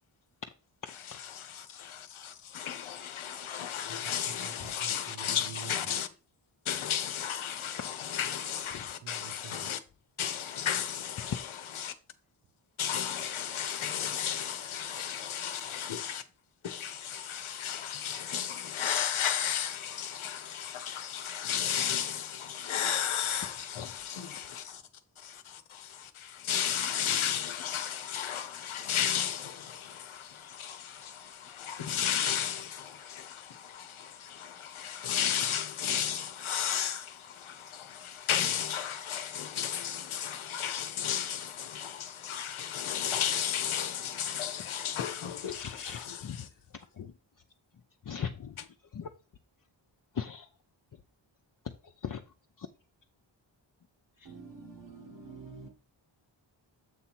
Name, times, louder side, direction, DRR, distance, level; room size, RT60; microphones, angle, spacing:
voice 1, 1.3-6.1 6.6-9.8 10.2-11.4 11.8-11.9 12.8-16.2 16.6-24.8 25.2-46.2, left 9 dB, 85° left, 0.8 m, -34 dB
voice 2, 3.8-5.9 8.8-9.7 54.2-55.7, right 6 dB, 65° right, 1.3 m, -47 dB
voice 3, 45.3-47.2 48.0-49.1 50.1-50.5 50.9-51.0 51.6-52.7 54.2-54.3, left 7 dB, 45° left, 0.6 m, -40 dB
7.8 x 2.8 x 5.9 m
wide cardioid pair, 80°, 48 cm